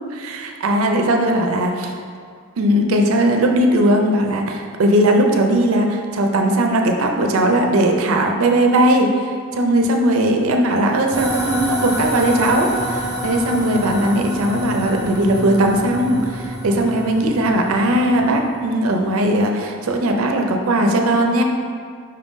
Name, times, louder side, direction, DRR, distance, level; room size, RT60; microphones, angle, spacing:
voice 1, 0.1-1.9 2.6-9.1 9.5-21.4, right 1 dB, 75° right, 3 dB, 0.5 m, -18 dB
sound 1, 11.1-18.7, equal, 15° right, 0.6 m, -27 dB
5.3 x 2.6 x 3.6 m, 2.1 s
head